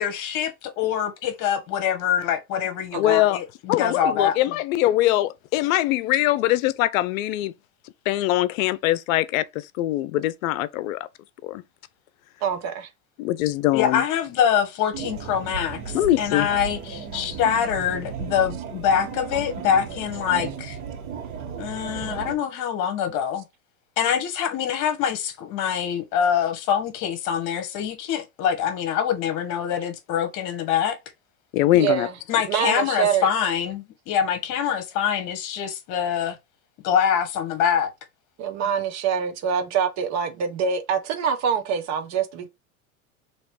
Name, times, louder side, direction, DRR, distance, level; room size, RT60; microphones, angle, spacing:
voice 1, 0.0-4.4 13.7-20.8 21.6-23.4 24.0-31.0 32.3-36.4 36.8-37.9, left 8 dB, 45° left, 1.4 m, -24 dB
voice 2, 3.0-3.4 3.7-7.5 8.1-9.4 9.8-11.0 11.4-11.6 13.2-14.0 15.9-16.5 31.5-32.1, left 15 dB, 65° left, 0.7 m, -22 dB
voice 3, 12.4-12.9 31.7-32.2 32.5-33.3 38.4-42.5, right 7 dB, 40° right, 1.0 m, -25 dB
sound 1, 14.9-22.4, right 6 dB, 60° right, 1.6 m, -35 dB
3.2 x 3.0 x 4.6 m
supercardioid pair, 125°, 43 cm